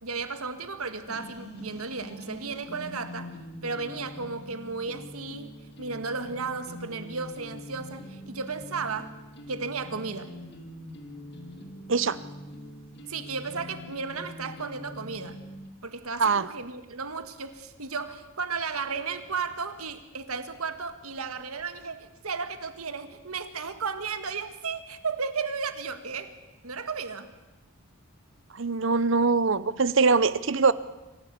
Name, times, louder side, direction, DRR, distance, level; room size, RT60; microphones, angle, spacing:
voice 1, 0.0-3.4 3.6-5.5 5.8-9.2 9.5-10.4 13.0-15.4 15.8-26.3 26.6-27.3, right 4 dB, 85° right, 9 dB, 1.8 m, -34 dB
sound 1, 1.1-15.7, left 1 dB, 50° left, 2.5 m, -44 dB
voice 2, 28.5-30.7, right 4 dB, 60° right, 16 dB, 0.8 m, -22 dB
25.5 x 15.5 x 8.3 m, 1.1 s
head